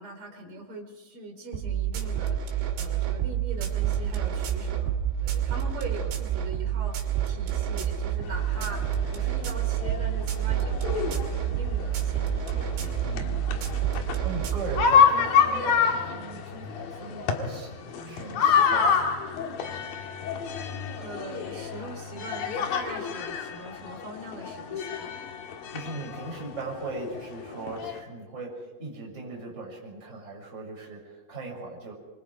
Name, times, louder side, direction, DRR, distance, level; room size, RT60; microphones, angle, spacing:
voice 1, 0.0-12.9 20.9-25.3, right 2 dB, 30° right, 1 dB, 4.8 m, -41 dB
sound 1, 1.5-14.9, right 10 dB, 90° right, 5.2 m, -28 dB
sound 2, 8.2-28.0, left 6 dB, 60° left, 3.1 m, -28 dB
voice 2, 13.0-13.4 13.8-19.2 25.7-31.9, right 3 dB, 15° right, -3 dB, 6.8 m, -39 dB
26.5 x 24.0 x 4.9 m, 1.1 s
omnidirectional pair, 5.2 m